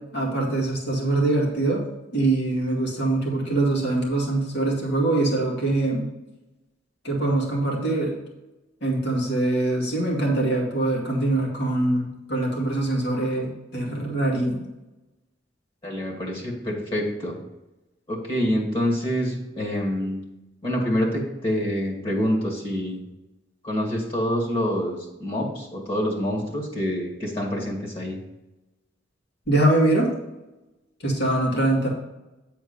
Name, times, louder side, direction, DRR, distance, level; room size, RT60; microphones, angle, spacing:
voice 1, 0.0-1.9 2.1-6.1 7.0-8.2 8.8-14.6 29.5-30.1 31.0-31.9, right 2 dB, 65° left, -2 dB, 2.2 m, -23 dB
voice 2, 15.8-17.4 18.1-20.2 20.6-23.0 23.6-28.2, equal, 30° left, -2 dB, 1.9 m, -26 dB
9.2 x 4.4 x 5.5 m, 0.99 s
head